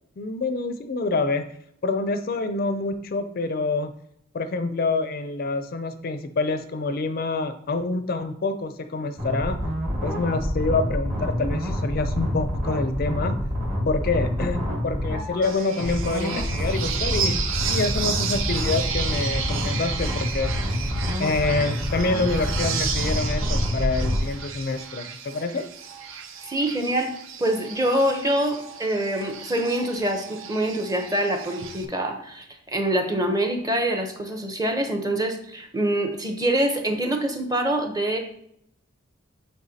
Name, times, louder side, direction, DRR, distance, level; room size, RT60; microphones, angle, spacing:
voice 1, 0.2-1.5 1.8-3.9 4.3-9.6 10.0-13.4 13.9-17.4 17.7-20.5 21.2-25.7, left 3 dB, 45° left, 9 dB, 0.4 m, -26 dB
sound 1, 9.2-24.2, equal, 40° right, 1.6 m, -27 dB
sound 2, 15.4-31.8, right 6 dB, 75° right, 0.6 m, -33 dB
voice 2, 26.1-38.2, right 1 dB, 20° right, 4 dB, 0.7 m, -25 dB
8.0 x 4.3 x 2.7 m, 0.73 s
head